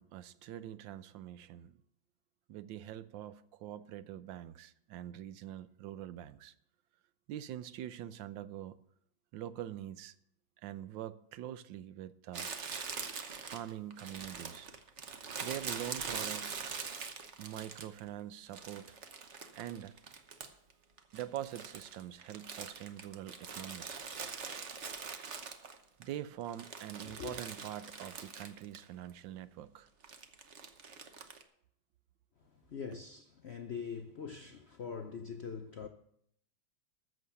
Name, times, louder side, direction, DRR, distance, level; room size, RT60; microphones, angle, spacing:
voice 1, 0.0-1.7 2.5-6.5 7.3-8.8 9.3-10.1 10.6-12.5 13.4-14.7 15.4-16.7 17.4-19.0 19.6-19.9 21.1-24.1 26.0-29.9, right 12 dB, 80° right, 1.3 m, -44 dB
Crumpling crinkling, 12.3-18.1 18.5-20.7 21.0-26.0 26.4-28.8 29.1-29.2 30.0-31.4, right 5 dB, 45° right, 1.0 m, -43 dB
voice 2, 27.0-27.4 32.5-35.9, left 6 dB, 65° left, 0.6 m, -43 dB
14.0 x 6.6 x 6.8 m
omnidirectional pair, 2.0 m